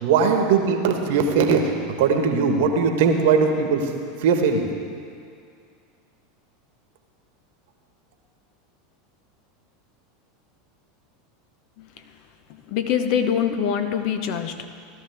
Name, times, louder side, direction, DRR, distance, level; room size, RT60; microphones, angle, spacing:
voice 1, 0.0-1.6 2.0-3.8 4.2-4.6, right 5 dB, 65° right, 5 dB, 1.4 m, -19 dB
voice 2, 12.7-14.7, left 8 dB, 55° left, 7 dB, 1.0 m, -23 dB
17.0 x 12.5 x 3.6 m, 2.3 s
hypercardioid pair, 85°, 0 cm